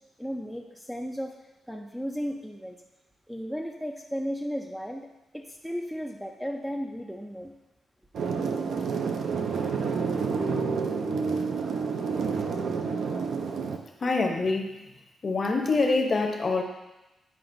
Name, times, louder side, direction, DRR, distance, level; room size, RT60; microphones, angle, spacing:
voice 1, 0.2-1.3 1.7-2.8 3.3-5.1 5.3-7.5, equal, ahead, 1 dB, 0.4 m, -34 dB
sound 1, 8.1-13.8, right 5 dB, 65° right, 0.6 m, -29 dB
voice 2, 14.0-14.7 15.2-16.6, left 3 dB, 35° left, 3 dB, 0.7 m, -25 dB
9.4 x 4.8 x 2.6 m, 0.99 s
wide cardioid pair, 150°, 0 cm